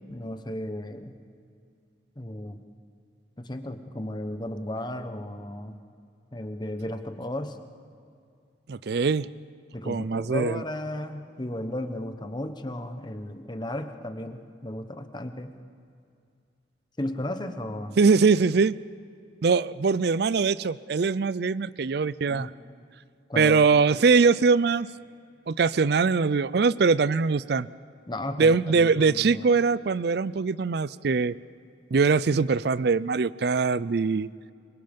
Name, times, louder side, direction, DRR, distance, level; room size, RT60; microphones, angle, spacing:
voice 1, 0.1-1.2 2.2-2.6 3.4-5.8 6.3-7.6 9.7-15.6 17.0-18.0 22.3-22.5 23.3-23.7 28.1-29.4, left 1 dB, 25° left, 8 dB, 1.1 m, -34 dB
voice 2, 8.7-9.3 9.8-10.6 18.0-18.7 19.4-22.5 23.4-24.9 25.5-27.7 28.4-31.3 31.9-34.3, right 4 dB, 60° right, 19 dB, 0.4 m, -22 dB
26.0 x 23.0 x 5.3 m, 2.4 s
head